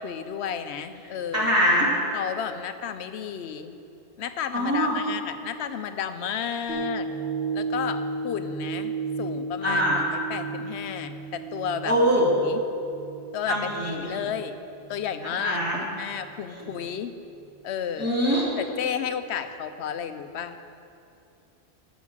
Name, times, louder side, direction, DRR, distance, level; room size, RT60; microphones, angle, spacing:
voice 1, 0.0-1.5 2.1-3.7 4.2-7.1 7.5-8.9 9.2-10.0 10.3-11.9 12.4-12.6 13.3-14.5 14.9-17.1 17.6-18.1 18.6-20.6, left 8 dB, 80° left, 10 dB, 0.9 m, -32 dB
voice 2, 1.3-1.9 4.5-5.0 9.6-10.0 11.8-12.2 13.4-14.1 15.2-15.8 16.5-16.7 18.0-18.5, equal, 15° right, -6 dB, 2.6 m, -23 dB
sound 1, 6.7-15.1 15.6-15.7, right 4 dB, 60° right, 1.9 m, -34 dB
12.0 x 6.3 x 7.4 m, 2.6 s
omnidirectional pair, 1.1 m